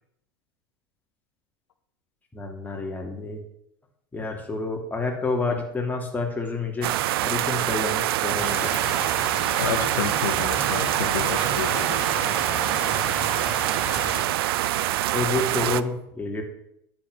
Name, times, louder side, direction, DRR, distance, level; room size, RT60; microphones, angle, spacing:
voice 1, 2.3-3.4 4.1-6.9 7.2-8.9 15.1-16.4, left 3 dB, 10° left, 0 dB, 3.0 m, -29 dB
sound 1, 6.8-15.8, right 15 dB, 70° right, 0.5 m, -25 dB
sound 2, 8.4-14.2, right 1 dB, 10° right, 4.8 m, -33 dB
voice 2, 9.6-12.1, left 9 dB, 80° left, 9 dB, 0.9 m, -30 dB
10.0 x 8.0 x 6.4 m, 0.76 s
hypercardioid pair, 85°, 13 cm